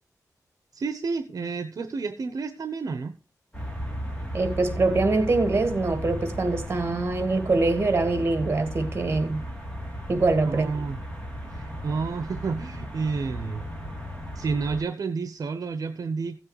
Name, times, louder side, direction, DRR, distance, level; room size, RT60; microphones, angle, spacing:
voice 1, 0.7-3.1 10.4-11.0 11.5-13.6 14.3-16.4, right 4 dB, 65° right, 0.9 m, -30 dB
sound 1, 3.5-14.8, equal, 15° left, 3.2 m, -35 dB
voice 2, 4.3-9.4 10.1-10.7, right 3 dB, 35° right, 2.0 m, -24 dB
16.0 x 7.6 x 3.1 m
wide cardioid pair, 155°, 7 cm